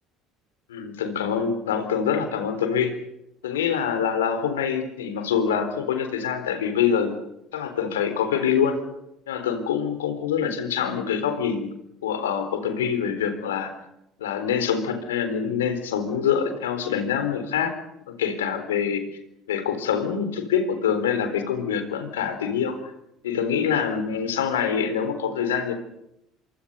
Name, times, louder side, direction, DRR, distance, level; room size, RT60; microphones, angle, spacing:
voice 1, 0.7-2.9 3.4-7.1 7.5-8.8 9.3-11.7 12.0-13.7 14.2-17.7 18.1-19.0 19.5-22.8 23.2-25.7, left 7 dB, 85° left, 8 dB, 3.8 m, -25 dB
26.0 x 25.5 x 5.5 m, 0.82 s
hypercardioid pair, 65°, 0 cm